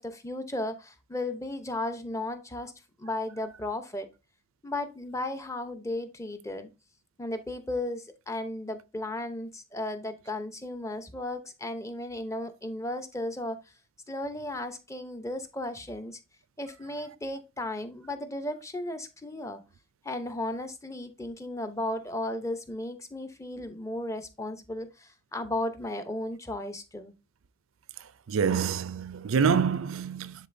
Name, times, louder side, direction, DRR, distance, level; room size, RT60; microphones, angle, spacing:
voice 1, 0.0-2.7 3.0-4.1 4.6-6.7 7.2-13.6 14.1-16.2 16.6-19.6 20.0-27.1, left 1 dB, 15° left, 0.7 m, -35 dB
voice 2, 28.3-30.3, right 6 dB, 90° right, 0.5 m, -26 dB
10.5 x 3.8 x 2.6 m
head